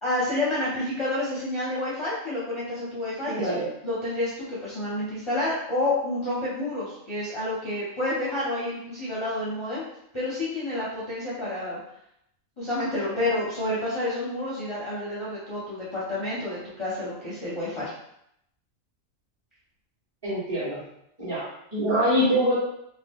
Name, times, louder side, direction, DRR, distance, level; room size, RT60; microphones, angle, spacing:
voice 1, 0.0-3.5 3.8-9.8 10.1-11.8 12.6-17.9, left 1 dB, 30° left, -8 dB, 0.6 m, -29 dB
voice 2, 3.3-3.7 20.2-20.8 21.2-22.6, equal, 20° right, -12 dB, 1.0 m, -24 dB
2.6 x 2.5 x 3.5 m, 0.77 s
omnidirectional pair, 1.4 m